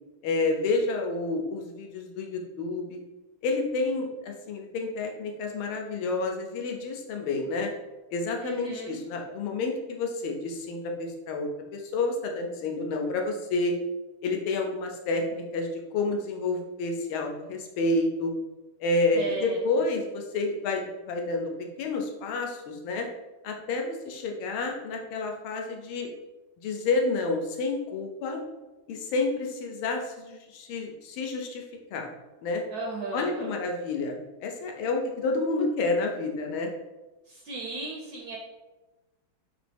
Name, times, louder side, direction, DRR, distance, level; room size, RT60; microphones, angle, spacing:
voice 1, 0.2-3.0 3.4-7.7 8.1-13.8 14.2-18.3 18.8-21.5 21.8-23.1 23.4-26.1 26.6-28.4 28.9-31.6 31.9-32.1 32.4-32.6 33.1-34.1 34.4-36.7, left 3 dB, 85° left, 2 dB, 1.5 m, -29 dB
voice 2, 8.4-9.0 19.1-19.6 32.7-33.5 37.3-38.4, right 3 dB, 75° right, -1 dB, 0.9 m, -36 dB
4.0 x 3.0 x 3.3 m, 1.1 s
omnidirectional pair, 2.2 m